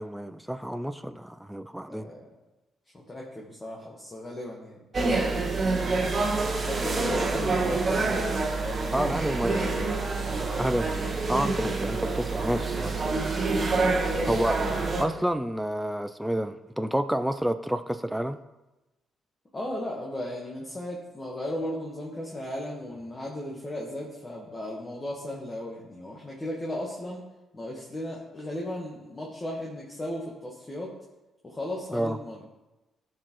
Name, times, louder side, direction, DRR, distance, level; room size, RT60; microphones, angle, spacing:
voice 1, 0.0-2.1 8.9-9.7 10.6-11.0 11.3-13.1 14.2-14.7 15.0-18.4 31.9-32.2, right 1 dB, 5° right, 9 dB, 0.4 m, -29 dB
voice 2, 1.9-2.3 2.9-4.8 5.5-6.1 6.5-9.4 11.0-11.1 13.9-14.5 19.5-27.2 27.5-30.9 31.4-32.4, left 1 dB, 25° left, -3 dB, 1.4 m, -36 dB
sound 1, 4.9-15.0, right 3 dB, 40° right, 1.3 m, -27 dB
13.5 x 4.6 x 3.1 m, 1.0 s
cardioid pair, 90°, 0 cm